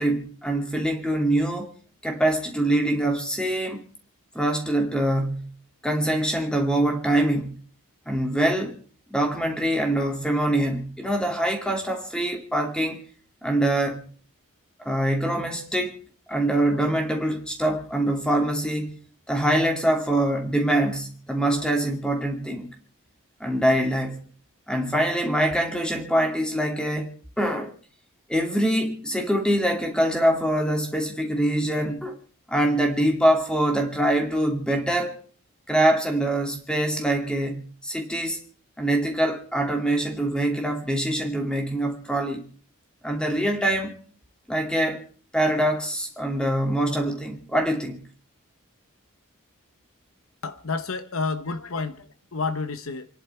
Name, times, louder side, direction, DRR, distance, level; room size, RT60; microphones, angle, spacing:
voice 1, 0.0-1.7 2.0-3.8 4.3-5.5 5.8-7.6 8.1-8.8 9.1-13.0 13.4-14.1 14.8-16.0 16.3-19.0 19.3-22.7 23.4-24.3 24.7-27.7 28.3-32.2 32.5-35.2 35.7-38.4 38.8-42.5 43.0-44.0 44.5-45.0 45.3-48.0, right 1 dB, 5° left, 2.7 m, -24 dB
voice 2, 50.4-53.1, left 4 dB, 70° left, 1.0 m, -30 dB
28.5 x 11.0 x 4.5 m
head